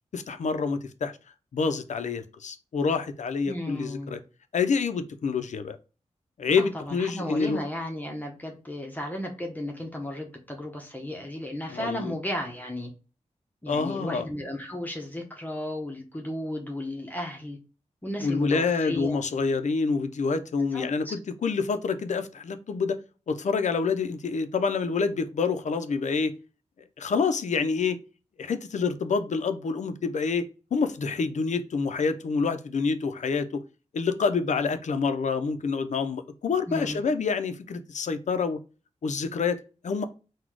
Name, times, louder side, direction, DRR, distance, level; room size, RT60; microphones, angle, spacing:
voice 1, 0.1-1.1 1.5-4.2 4.5-5.8 6.4-7.6 11.7-12.1 13.7-14.3 18.2-23.0 23.3-26.3 27.0-28.0 28.4-30.5 30.7-33.6 33.9-38.6 39.0-40.0, left 5 dB, 70° left, 8 dB, 0.6 m, -27 dB
voice 2, 3.5-4.2 6.6-12.9 13.6-17.6 18.0-19.2 20.7-21.1 36.7-37.0, left 1 dB, 15° left, 1 dB, 0.8 m, -34 dB
4.1 x 2.3 x 4.6 m, 0.33 s
wide cardioid pair, 125°, 13 cm